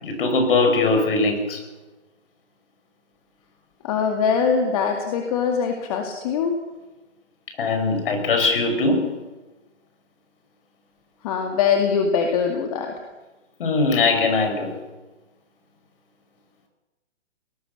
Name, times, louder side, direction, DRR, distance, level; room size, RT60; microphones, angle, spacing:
voice 1, 0.0-1.6 7.6-9.1 13.6-14.7, left 3 dB, 50° left, 5 dB, 5.7 m, -21 dB
voice 2, 3.8-6.5 11.2-12.9, left 6 dB, 30° left, 3 dB, 2.3 m, -22 dB
21.5 x 19.0 x 6.7 m, 1.1 s
hypercardioid pair, 155°, 36 cm